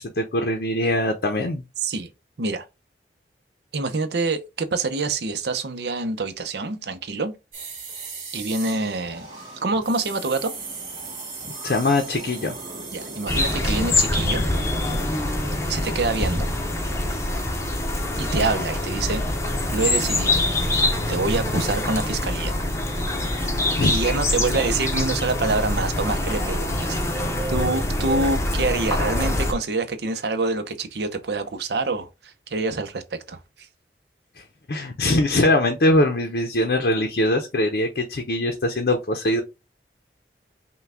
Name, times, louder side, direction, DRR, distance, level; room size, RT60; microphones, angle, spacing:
voice 1, 0.0-1.6 11.6-12.6 23.8-23.9 34.4-39.4, left 1 dB, 60° left, 0.6 m, -22 dB
voice 2, 3.7-7.3 8.3-9.3 9.6-10.5 12.9-14.4 15.7-16.5 18.2-19.2 19.7-20.5 21.1-22.6 23.8-27.0 27.5-33.4, right 3 dB, 70° right, 0.7 m, -26 dB
sound 1, 7.5-14.0 14.3-14.5, right 4 dB, 45° right, 2.0 m, -38 dB
sound 2, 8.7-17.2, equal, 25° right, 1.2 m, -41 dB
sound 3, 13.3-29.5, left 1 dB, 15° left, 0.7 m, -24 dB
5.6 x 2.3 x 3.5 m
head